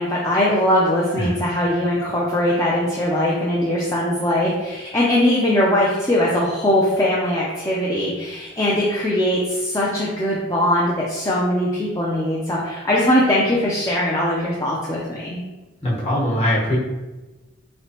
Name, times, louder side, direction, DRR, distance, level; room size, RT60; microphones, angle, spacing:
voice 1, 0.0-15.4, left 1 dB, 15° left, -5 dB, 0.4 m, -20 dB
voice 2, 15.8-16.8, left 1 dB, 30° left, -6 dB, 1.1 m, -21 dB
3.8 x 3.2 x 2.9 m, 1.1 s
head